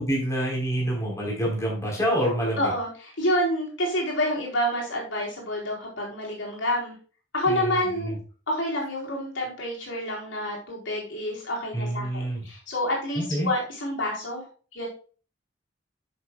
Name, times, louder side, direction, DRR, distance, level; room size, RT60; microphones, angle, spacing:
voice 1, 0.0-2.7 7.5-8.2 11.7-12.4 13.2-13.5, equal, 15° left, -3 dB, 3.9 m, -27 dB
voice 2, 2.6-6.9 7.3-8.1 8.5-14.4 14.7-14.9, equal, 75° left, -3 dB, 4.4 m, -28 dB
11.5 x 6.7 x 2.3 m, 0.38 s
head